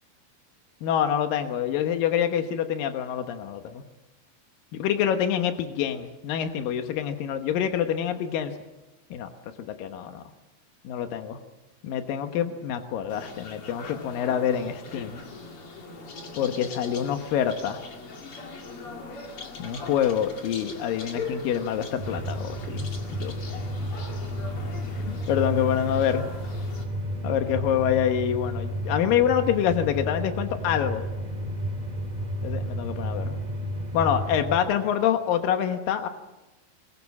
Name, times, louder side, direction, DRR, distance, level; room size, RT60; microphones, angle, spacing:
voice 1, 0.8-3.8 4.7-8.6 9.1-9.3 9.7-10.2 10.8-11.4 11.8-15.2 16.4-17.8 19.6-22.9 23.2-23.3 25.1-26.3 27.2-31.1 32.4-33.4 33.9-36.1, left 9 dB, 80° left, 7 dB, 2.0 m, -26 dB
sound 1, 13.1-26.8, left 4 dB, 45° left, 1.9 m, -40 dB
sound 2, 22.0-34.6, equal, 10° right, 2.1 m, -32 dB
23.0 x 21.0 x 7.3 m, 1.0 s
omnidirectional pair, 5.8 m